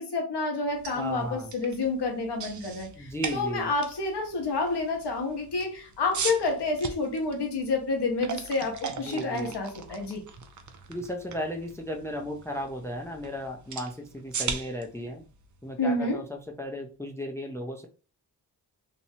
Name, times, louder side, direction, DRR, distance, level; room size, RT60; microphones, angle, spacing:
voice 1, 0.0-10.2 15.8-16.2, left 3 dB, 85° left, 0.9 m, -29 dB
sound 1, 0.6-16.6, right 6 dB, 50° right, 0.5 m, -40 dB
voice 2, 0.9-1.5 3.0-3.7 8.9-9.5 10.9-15.2 15.6-17.9, equal, 5° left, 0.4 m, -35 dB
2.8 x 2.1 x 2.7 m
cardioid pair, 70°, 40 cm